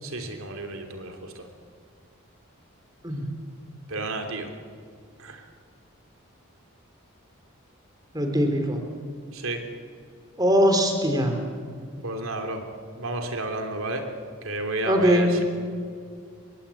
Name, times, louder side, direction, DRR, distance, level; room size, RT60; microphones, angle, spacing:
voice 1, 0.0-1.5 3.9-4.5 5.2-5.5 9.3-9.6 12.0-12.6 12.9-14.1 14.4-15.4, right 2 dB, 80° right, 4 dB, 3.2 m, -32 dB
voice 2, 8.1-8.8 10.4-11.4 14.8-15.3, equal, 20° right, 5 dB, 3.3 m, -21 dB
28.0 x 23.0 x 8.5 m, 2.2 s
head